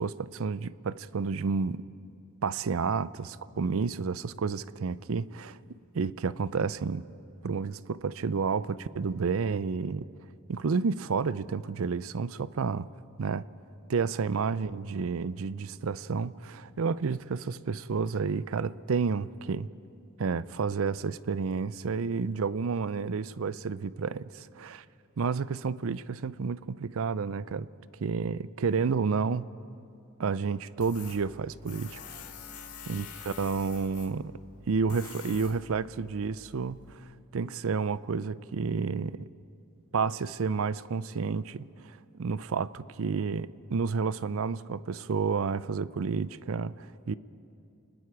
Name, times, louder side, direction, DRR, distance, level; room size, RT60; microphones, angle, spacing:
voice 1, 0.0-1.8 2.4-5.6 5.9-7.0 7.4-10.1 10.5-12.9 13.2-13.5 13.9-19.7 20.2-24.8 25.2-27.7 28.0-29.5 30.2-32.0 32.9-34.3 34.7-37.0 37.3-39.3 39.9-47.1, right 5 dB, 65° right, 17 dB, 0.5 m, -30 dB
Tools, 30.8-37.0, left 6 dB, 75° left, 2.0 m, -47 dB
29.5 x 20.5 x 4.7 m, 2.6 s
head